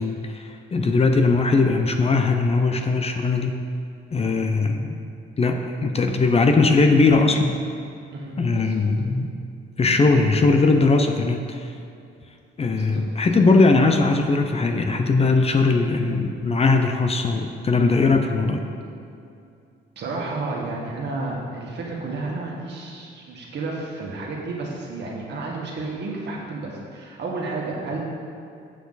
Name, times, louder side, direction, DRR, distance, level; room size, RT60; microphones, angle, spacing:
voice 1, 0.0-3.6 4.1-5.0 5.4-7.6 8.4-9.3 9.8-11.7 12.6-18.6, left 3 dB, 30° left, 5 dB, 0.6 m, -20 dB
voice 2, 8.1-8.8 9.9-10.0 12.7-13.0 19.9-28.0, right 3 dB, 60° right, -2 dB, 1.7 m, -31 dB
7.2 x 6.9 x 4.0 m, 2.5 s
cardioid pair, 90°, 20 cm